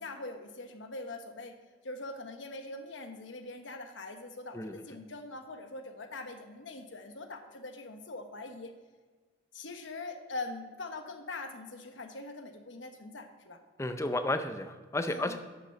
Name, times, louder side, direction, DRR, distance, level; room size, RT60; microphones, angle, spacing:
voice 1, 0.0-1.5 1.8-8.7 9.5-13.6 15.1-15.4, left 2 dB, 90° left, 6 dB, 1.1 m, -42 dB
voice 2, 13.8-15.4, left 2 dB, 15° left, 9 dB, 0.5 m, -32 dB
8.2 x 6.7 x 5.9 m, 1.4 s
head